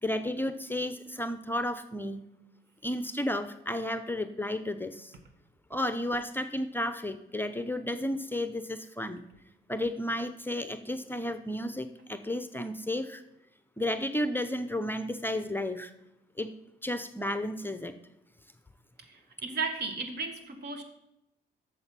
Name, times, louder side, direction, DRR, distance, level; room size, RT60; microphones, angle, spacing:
voice 1, 0.0-2.2 2.8-5.1 5.7-9.2 9.7-13.2 13.8-15.9 16.4-16.5 16.8-17.9, left 1 dB, 10° left, 10 dB, 0.6 m, -32 dB
voice 2, 19.1-20.8, right 4 dB, 60° right, 7 dB, 1.6 m, -35 dB
7.8 x 6.8 x 5.7 m, 0.86 s
cardioid pair, 90°, 20 cm